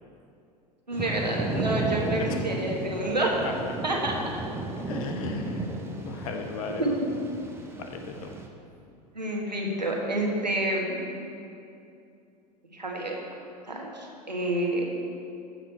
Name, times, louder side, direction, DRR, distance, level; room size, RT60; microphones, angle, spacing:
Thunder / Rain, 0.9-8.5, right 2 dB, 10° right, 1.0 m, -33 dB
voice 1, 0.9-3.3 3.8-4.1 6.8-6.9 9.1-11.0 12.7-13.2 13.7-14.9, right 1 dB, 90° right, -1 dB, 1.5 m, -28 dB
voice 2, 3.2-3.5 4.9-5.7 6.0-6.9 7.8-8.3, left 5 dB, 55° left, 5 dB, 1.1 m, -36 dB
14.5 x 5.9 x 4.5 m, 2.6 s
figure-of-eight pair, 85°, 21 cm